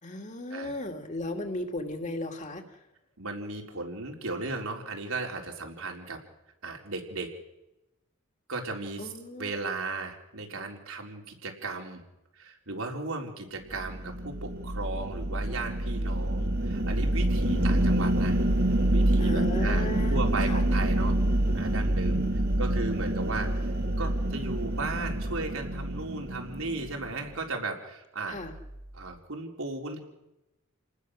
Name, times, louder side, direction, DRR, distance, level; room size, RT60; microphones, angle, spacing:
voice 1, 0.0-2.6 9.0-9.5 17.4-17.6 19.2-20.2 20.5-20.6 22.1-22.4 28.3-28.5, left 1 dB, 35° left, 4 dB, 2.5 m, -36 dB
voice 2, 3.2-6.2 6.6-7.3 8.5-12.0 12.4-18.4 18.9-21.2 21.5-28.4 28.9-30.0, right 3 dB, 90° right, 1 dB, 4.2 m, -36 dB
sound 1, 13.7-27.3, right 1 dB, 50° right, 1.8 m, -27 dB
29.0 x 19.5 x 6.5 m, 0.94 s
head